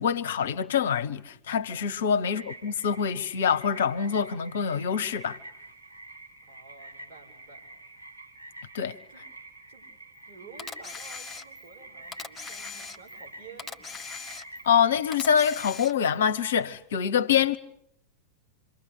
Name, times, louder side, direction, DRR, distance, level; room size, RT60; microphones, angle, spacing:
voice 1, 0.0-5.4 8.7-9.0 14.6-17.6, left 7 dB, 60° left, 1.0 m, -25 dB
sound 1, 2.3-15.5, right 2 dB, 80° right, 3.2 m, -48 dB
voice 2, 6.5-7.7 9.1-9.2 9.7-9.9 10.2-14.1, right 4 dB, 50° right, 7.9 m, -51 dB
Camera, 10.6-11.7 12.1-13.3 13.6-14.7 15.1-16.2, left 4 dB, 15° left, 1.5 m, -40 dB
27.5 x 23.5 x 8.5 m
figure-of-eight pair, 90°, 0 cm